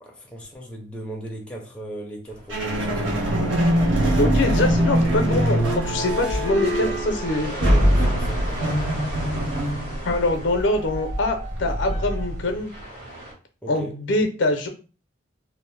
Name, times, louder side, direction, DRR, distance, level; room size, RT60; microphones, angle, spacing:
voice 1, 0.0-3.4 6.8-7.0 7.4-8.9 13.6-13.9, right 1 dB, 5° left, 0.5 m, -38 dB
sound 1, 2.3-13.3, right 1 dB, 50° right, 1.5 m, -39 dB
sound 2, 2.5-12.6, equal, 80° right, 0.9 m, -23 dB
voice 2, 4.2-7.6 10.0-12.7 13.7-14.7, left 2 dB, 75° left, 0.5 m, -24 dB
2.6 x 2.0 x 3.1 m
head